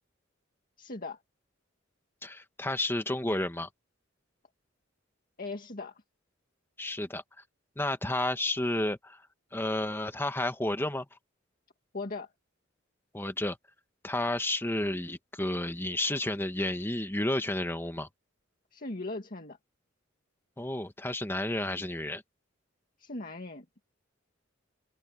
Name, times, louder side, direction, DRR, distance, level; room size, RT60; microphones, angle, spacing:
voice 1, 0.8-1.2 5.4-6.0 11.9-12.3 18.7-19.6 23.0-23.6, left 2 dB, 45° left, 2.0 m, -38 dB
voice 2, 2.2-3.7 6.8-7.2 7.8-9.2 9.5-11.0 13.1-13.6 14.0-18.1 20.6-22.2, left 1 dB, 10° left, 1.5 m, -31 dB
head